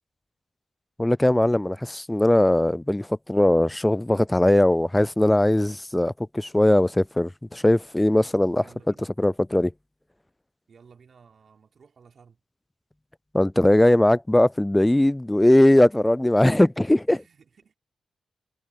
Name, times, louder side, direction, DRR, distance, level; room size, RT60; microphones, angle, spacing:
voice 1, 1.0-8.6 9.2-9.7 13.3-17.2, left 1 dB, 15° left, 0.3 m, -20 dB
voice 2, 8.6-9.1 10.7-12.4 17.1-17.7, right 6 dB, 60° right, 3.5 m, -54 dB
supercardioid pair, 40°, 0 cm